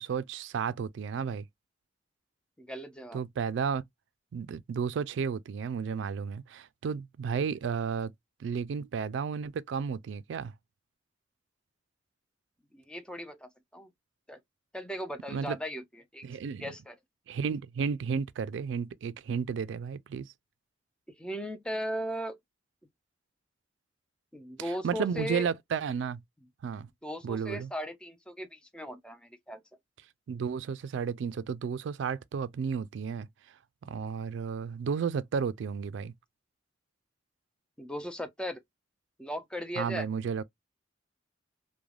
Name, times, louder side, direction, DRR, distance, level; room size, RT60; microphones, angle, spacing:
voice 1, 0.0-1.4 3.1-3.8 4.3-8.1 8.4-10.5 15.3-15.6 16.2-16.7 17.3-20.3 24.6-26.2 26.6-26.9 27.2-27.7 30.3-33.3 33.8-36.1 39.8-40.4, right 6 dB, 70° right, 0.3 m, -33 dB
voice 2, 2.6-3.2 7.3-7.4 12.7-13.9 14.3-14.4 14.7-15.8 16.1-16.3 16.6-17.0 21.2-22.4 24.3-25.5 27.0-29.6 37.8-38.6 39.2-40.1, equal, 5° left, 0.5 m, -37 dB
3.2 x 2.1 x 2.3 m
head